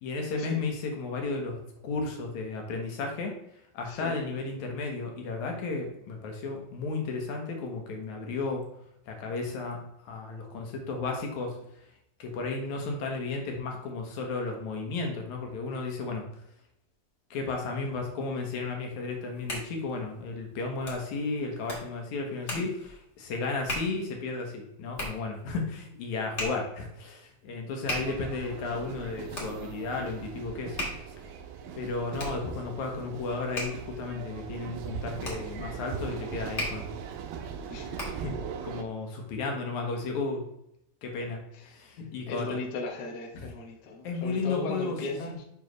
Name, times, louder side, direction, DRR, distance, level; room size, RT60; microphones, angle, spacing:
voice 1, 0.0-3.3 3.7-8.6 9.1-11.6 12.2-16.3 17.3-30.8 31.7-36.9 38.2-38.4 38.6-40.4 41.0-41.4 41.7-42.6 43.3-43.5 44.0-45.0 45.3-45.4, left 3 dB, 65° left, 2 dB, 2.2 m, -33 dB
Hands, 19.1-38.4, left 1 dB, 30° left, 1.3 m, -40 dB
sound 1, 27.9-38.8, right 6 dB, 90° right, 2.6 m, -40 dB
voice 2, 42.3-45.4, left 3 dB, 90° left, 0 dB, 1.3 m, -36 dB
7.3 x 5.5 x 3.2 m, 0.77 s
omnidirectional pair, 4.4 m